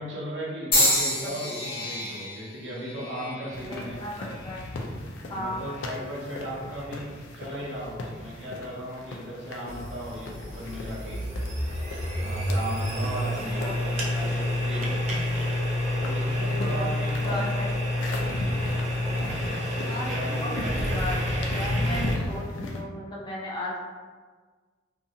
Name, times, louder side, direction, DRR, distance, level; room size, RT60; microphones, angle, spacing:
voice 1, 0.0-4.0 5.3-11.2 12.2-15.1 15.9-17.5 19.0-21.0, right 1 dB, 70° right, -5 dB, 0.7 m, -37 dB
sound 1, 0.7-4.8 5.6-6.0 6.9-7.1, left 1 dB, 50° left, 0.8 m, -29 dB
voice 2, 0.7-1.5 3.7-4.7 5.3-5.6 13.3-13.7 16.4-16.9 17.1-17.7 19.9-23.8, left 1 dB, 25° left, -5 dB, 0.5 m, -36 dB
sound 2, 3.5-22.8, left 1 dB, 85° left, 0.4 m, -38 dB
sound 3, 9.7-22.2, left 1 dB, 35° right, 0.4 m, -28 dB
2.6 x 2.3 x 2.7 m, 1.5 s
head